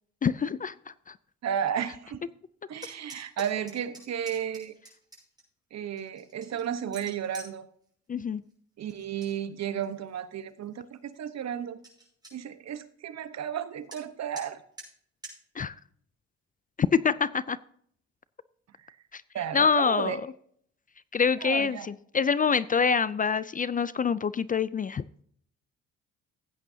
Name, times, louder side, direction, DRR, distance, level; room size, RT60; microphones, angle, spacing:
voice 1, 0.2-0.7 1.1-1.2 8.1-8.4 15.6-15.7 16.8-17.6 19.1-19.2 19.5-20.2 21.1-25.0, left 6 dB, 30° left, 17 dB, 0.4 m, -25 dB
voice 2, 1.4-2.2 2.7-4.7 5.7-7.7 8.8-11.8 12.3-14.6 19.3-20.2 21.4-21.9, right 9 dB, 60° right, 12 dB, 1.0 m, -33 dB
sound 1, 2.8-5.4 6.0-7.5 8.9-9.3 9.7-10.2 10.7-10.8 11.1-11.2 11.5-11.6 11.8-12.3 13.9-14.0 14.3-14.5 14.8-14.9 15.2-15.4, right 2 dB, 15° right, 5.5 m, -47 dB
16.0 x 8.9 x 2.7 m, 0.63 s
cardioid pair, 90°, 30 cm